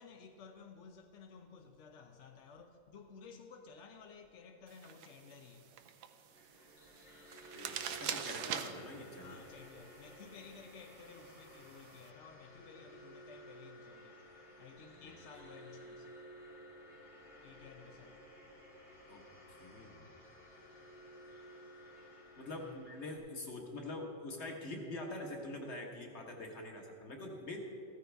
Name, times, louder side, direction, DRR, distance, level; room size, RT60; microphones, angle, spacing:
voice 1, 0.0-5.8 7.0-7.2 9.2-16.6 17.2-18.6 19.5-19.7 20.7-20.9 21.1-21.7 22.5-22.8, left 5 dB, 60° left, 0.7 m, -56 dB
sound 1, 4.7-12.1, right 8 dB, 70° right, 1.2 m, -46 dB
sound 2, 6.2-23.2, equal, 85° left, 3.4 m, -55 dB
voice 2, 7.5-9.4 15.0-15.2 19.1-20.0 22.4-27.6, left 2 dB, 40° left, 1.7 m, -45 dB
15.0 x 13.0 x 3.4 m
omnidirectional pair, 1.9 m